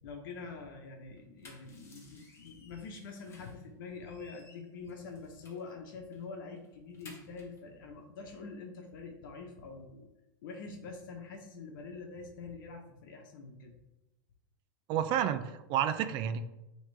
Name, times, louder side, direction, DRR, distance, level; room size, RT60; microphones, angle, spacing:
voice 1, 0.0-10.1 10.4-13.8, left 4 dB, 70° left, 2 dB, 1.1 m, -45 dB
sound 1, 1.2-3.7 4.0-5.7 6.1-6.3 6.6-7.6, left 3 dB, 20° left, 1.3 m, -57 dB
voice 2, 14.9-16.4, right 9 dB, 45° right, 10 dB, 0.5 m, -30 dB
9.2 x 3.2 x 3.4 m, 0.96 s
supercardioid pair, 130°, 12 cm